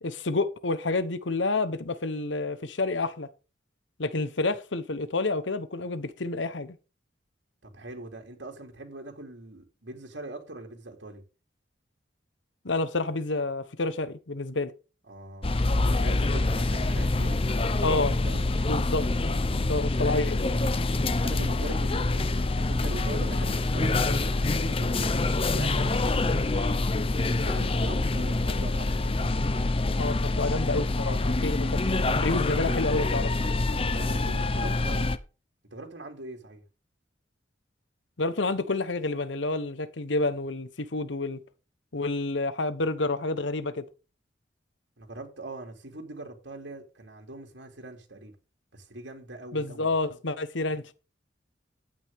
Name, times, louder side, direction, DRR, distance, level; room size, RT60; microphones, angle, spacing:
voice 1, 0.0-3.3 4.0-6.8 12.6-14.7 17.8-18.2 18.7-19.1 19.5-20.4 30.0-31.8 32.2-33.3 38.2-41.4 41.9-43.8 49.5-50.9, left 2 dB, 85° left, 1.1 m, -29 dB
voice 2, 7.6-11.2 15.1-15.5 15.8-17.4 18.1-18.5 21.2-25.2 25.5-26.7 27.3-29.2 33.9-35.1 35.7-36.6 45.0-48.3 48.7-49.9, right 2 dB, 80° right, 2.9 m, -42 dB
sound 1, 15.4-35.2, left 2 dB, 30° left, 0.8 m, -26 dB
11.5 x 9.0 x 3.7 m
head